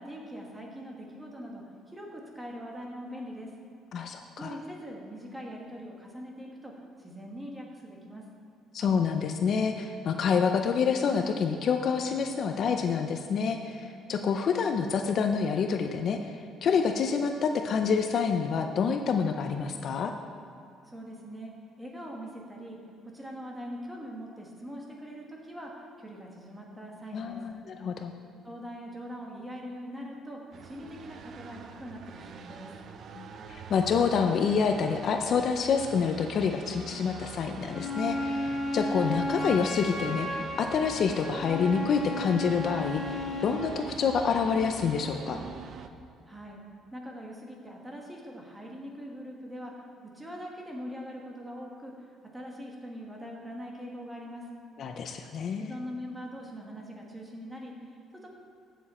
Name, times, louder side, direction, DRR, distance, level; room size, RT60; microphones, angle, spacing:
voice 1, 0.0-3.5 4.4-6.7 7.0-8.3 20.8-21.5 21.8-22.8 23.0-27.4 28.4-32.7 46.3-46.6 46.9-54.4 55.6-58.3, equal, 10° right, -1 dB, 1.6 m, -42 dB
voice 2, 3.9-4.5 8.7-20.1 27.1-28.1 33.2-45.4 54.8-55.8, left 6 dB, 45° left, 5 dB, 0.6 m, -27 dB
sound 1, 30.5-45.9, right 6 dB, 40° right, 0.6 m, -45 dB
Wind instrument woodwind instrument, 37.7-43.7, left 1 dB, 15° left, 2.1 m, -33 dB
15.0 x 7.1 x 4.3 m, 2.6 s
cardioid pair, 160°, 0 cm